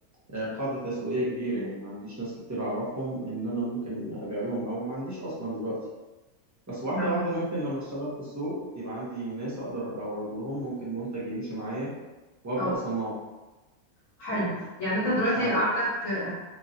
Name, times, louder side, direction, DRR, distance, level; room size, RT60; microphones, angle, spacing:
voice 1, 0.3-5.8 6.7-11.9 12.4-13.2 14.3-14.5 15.3-15.6, right 1 dB, 15° right, -8 dB, 0.6 m, -32 dB
voice 2, 14.2-16.3, equal, 65° left, -9 dB, 1.3 m, -27 dB
3.0 x 2.6 x 2.6 m, 1.1 s
omnidirectional pair, 1.5 m